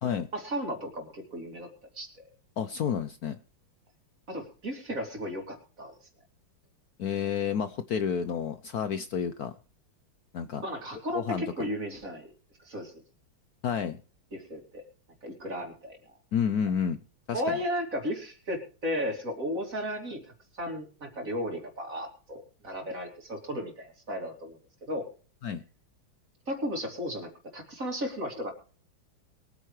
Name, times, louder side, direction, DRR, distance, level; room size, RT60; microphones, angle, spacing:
voice 1, 0.3-2.2 4.3-6.0 10.6-12.3 12.6-12.9 14.3-14.8 15.2-16.0 17.3-20.2 20.5-25.1 26.5-28.5, equal, 40° right, 3 dB, 3.3 m, -35 dB
voice 2, 2.6-3.4 7.0-9.5 10.3-10.6 11.1-11.7 13.6-14.0 16.3-17.0 17.3-17.6 25.4-25.6, left 7 dB, 65° left, 11 dB, 1.0 m, -30 dB
22.5 x 9.2 x 3.2 m, 0.38 s
omnidirectional pair, 2.3 m